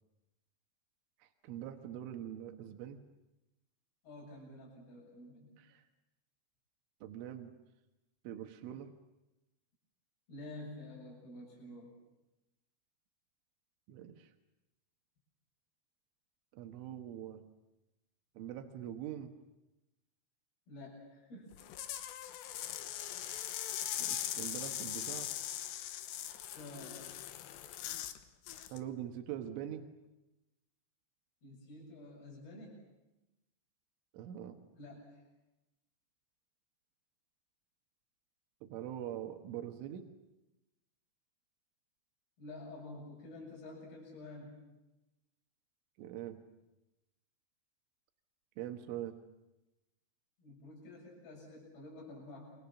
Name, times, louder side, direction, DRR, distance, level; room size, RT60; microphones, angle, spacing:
voice 1, 1.2-3.0 5.6-5.8 7.0-7.5 8.3-8.9 13.9-14.3 16.5-17.4 18.4-19.3 24.0-25.3 28.7-29.8 34.1-34.6 38.6-40.1 46.0-46.4 48.6-49.2, right 11 dB, 85° right, 6 dB, 3.9 m, -43 dB
voice 2, 4.0-5.5 10.3-11.9 20.7-21.5 26.5-27.0 31.4-32.8 34.7-35.2 42.4-44.6 50.4-52.6, left 2 dB, 55° left, -5 dB, 9.0 m, -49 dB
sound 1, 21.5-28.2 28.5-28.8, left 12 dB, 75° left, 3.2 m, -40 dB
29.0 x 25.0 x 7.2 m, 0.98 s
omnidirectional pair, 5.4 m